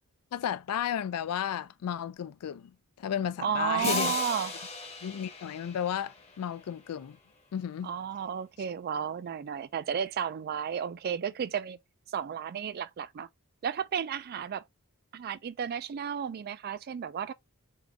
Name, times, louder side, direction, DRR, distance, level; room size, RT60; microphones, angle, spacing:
voice 1, 0.3-2.7 3.0-4.2 5.0-7.2 7.5-7.9, left 9 dB, 85° left, 0.3 m, -33 dB
voice 2, 3.4-4.5 7.8-11.8 12.1-13.3 13.6-14.6 15.1-17.3, right 7 dB, 45° right, 0.3 m, -33 dB
sound 1, 3.8-6.6, left 4 dB, 30° left, 0.9 m, -36 dB
3.7 x 2.5 x 2.9 m
head